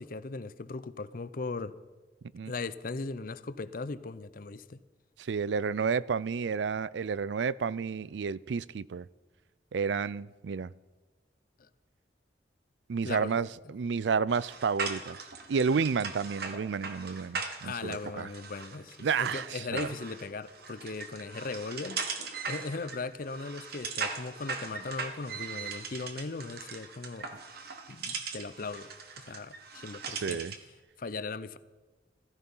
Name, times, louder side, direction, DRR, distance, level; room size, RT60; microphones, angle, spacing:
voice 1, 0.0-1.7 2.5-4.8 13.0-13.4 17.6-22.0 22.5-27.3 27.9-28.9 29.2-30.4 31.0-31.6, left 3 dB, 55° left, 0.6 m, -38 dB
voice 2, 5.2-9.1 9.7-10.7 12.9-15.2 15.5-18.3 19.0-19.9 30.2-30.5, right 5 dB, 90° right, 0.4 m, -31 dB
sound 1, 14.3-30.7, right 5 dB, 60° right, 1.5 m, -40 dB
15.0 x 14.5 x 5.5 m
head